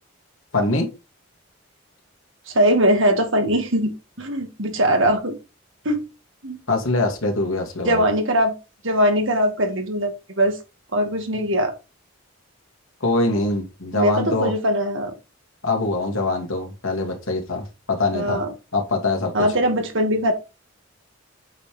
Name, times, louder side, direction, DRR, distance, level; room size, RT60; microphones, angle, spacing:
voice 1, 0.5-0.9 6.7-8.0 13.0-14.5 15.6-18.4 18.7-19.5, left 2 dB, 75° left, 2.5 m, -23 dB
voice 2, 2.5-5.4 5.9-6.0 6.4-6.6 7.9-8.6 8.8-10.6 10.9-11.7 14.0-15.1 18.1-18.5 19.3-20.3, equal, 65° right, 1.8 m, -21 dB
8.3 x 5.5 x 3.4 m
head